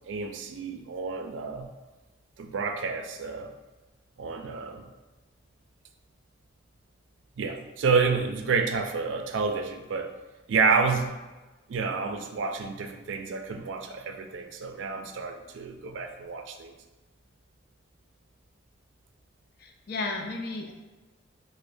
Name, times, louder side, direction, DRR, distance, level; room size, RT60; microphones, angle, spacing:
voice 1, 0.1-1.7 2.4-3.5 4.2-4.8 7.4-10.1 10.5-11.2 11.7-16.7, right 5 dB, 70° right, 5 dB, 0.4 m, -29 dB
voice 2, 19.6-20.7, left 3 dB, 50° left, 2 dB, 0.4 m, -33 dB
4.7 x 2.1 x 2.6 m, 1.2 s
head